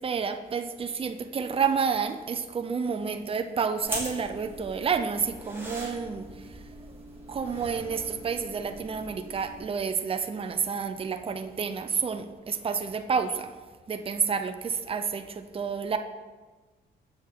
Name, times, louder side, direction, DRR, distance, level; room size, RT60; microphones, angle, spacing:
voice 1, 0.0-6.6 7.3-13.5 13.9-16.0, right 6 dB, 30° right, 8 dB, 0.6 m, -30 dB
sound 1, 3.8-9.6, right 1 dB, 10° right, 2.6 m, -41 dB
7.7 x 6.2 x 3.7 m, 1.3 s
cardioid pair, 90°, 20 cm